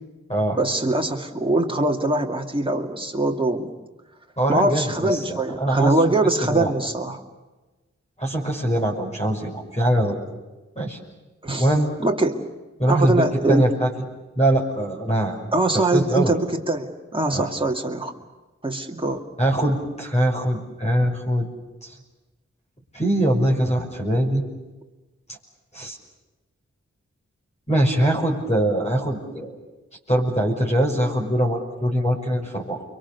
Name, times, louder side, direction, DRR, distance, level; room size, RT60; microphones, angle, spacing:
voice 1, 0.6-3.7 4.5-7.2 11.4-11.7 12.0-12.4 12.9-13.6 15.5-18.1 18.6-19.2, right 2 dB, 20° right, 1 dB, 2.3 m, -22 dB
voice 2, 4.4-6.1 6.4-6.7 8.2-10.2 10.8-11.0 11.6-11.9 12.8-13.9 14.4-15.4 15.7-16.3 17.3-17.5 19.4-21.5 21.8-21.9 22.9-24.4 25.7-26.0 27.7-29.6 30.1-32.8, right 1 dB, 25° left, -1 dB, 5.9 m, -22 dB
29.5 x 24.0 x 6.9 m, 1.1 s
wide cardioid pair, 80°, 29 cm